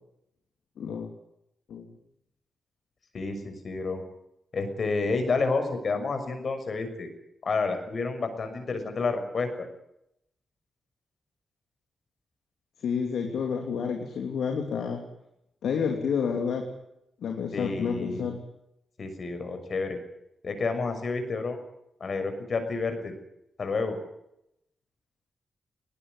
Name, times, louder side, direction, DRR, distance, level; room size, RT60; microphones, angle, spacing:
voice 1, 0.8-1.1 1.7-1.9 12.8-15.0 15.6-16.6 17.2-18.4, left 6 dB, 75° left, 3 dB, 3.0 m, -29 dB
voice 2, 3.1-4.0 4.5-7.1 7.4-9.7 17.5-18.3 19.0-20.0 20.4-21.6 22.0-23.1 23.6-24.0, left 4 dB, 55° left, 7 dB, 6.4 m, -29 dB
20.5 x 19.0 x 9.8 m, 0.81 s
supercardioid pair, 40°, 0 cm